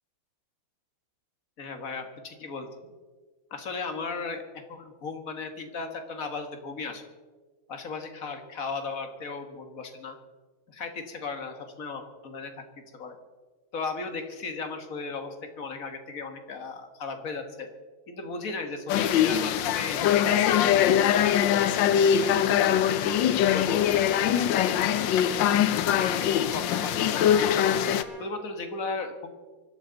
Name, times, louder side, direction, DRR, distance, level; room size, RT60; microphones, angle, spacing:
voice 1, 1.6-2.7 3.5-7.0 7.7-10.2 10.7-12.6 12.9-13.2 13.7-17.7 18.1-21.6 22.2-25.7 26.0-27.5 28.2-29.3, left 4 dB, 45° left, 6 dB, 1.9 m, -36 dB
sound 1, 18.9-28.0, left 9 dB, 70° left, 1.3 m, -23 dB
Trumpet, 23.8-28.3, right 2 dB, 20° right, 4.7 m, -48 dB
24.5 x 12.0 x 4.0 m, 1.4 s
omnidirectional pair, 2.3 m